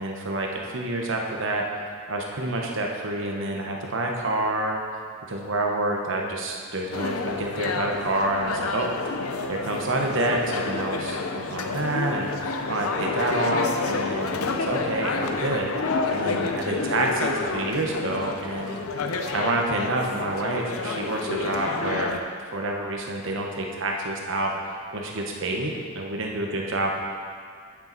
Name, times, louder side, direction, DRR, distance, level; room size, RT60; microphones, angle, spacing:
voice 1, 0.0-1.8 2.1-4.8 5.3-8.9 9.5-12.3 12.7-15.7 16.1-18.8 19.3-22.2 22.5-26.9, right 2 dB, 65° right, 0 dB, 1.1 m, -28 dB
sound 1, 6.9-22.2, left 3 dB, 85° left, 0.6 m, -29 dB
8.9 x 7.5 x 4.1 m, 2.1 s
head